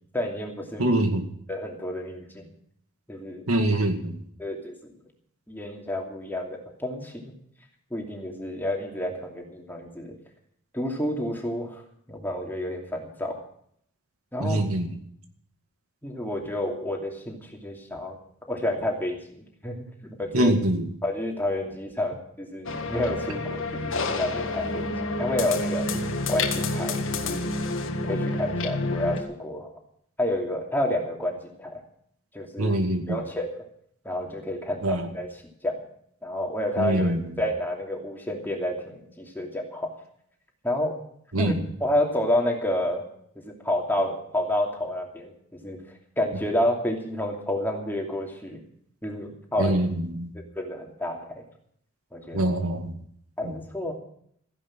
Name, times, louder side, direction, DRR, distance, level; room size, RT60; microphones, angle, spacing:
voice 1, 0.1-0.9 1.5-2.5 3.1-3.4 4.4-4.9 5.5-7.3 7.9-10.1 10.7-11.8 12.1-13.4 14.3-14.6 16.0-18.1 18.5-19.2 19.6-19.8 20.0-20.5 21.0-24.9 25.2-25.9 26.3-27.5 28.1-29.7 30.2-31.8 32.3-32.8 33.1-33.5 34.0-35.3 35.6-35.8 36.2-39.9 40.6-41.0 41.4-41.5 41.8-43.0 43.4-45.3 45.6-45.8 46.2-48.6 49.0-49.8 50.6-51.3 52.1-52.4 53.4-53.9, left 1 dB, 10° left, 1 dB, 2.7 m, -29 dB
voice 2, 0.8-1.2 3.5-4.2 14.4-14.9 20.3-20.9 32.6-33.2 34.8-35.1 36.8-37.3 41.3-41.6 49.6-50.3 52.3-53.0 53.4-53.5, right 1 dB, 80° right, 5 dB, 2.2 m, -24 dB
sound 1, 22.7-29.2, left 2 dB, 60° left, 1.9 m, -29 dB
15.0 x 10.5 x 7.5 m, 0.67 s
head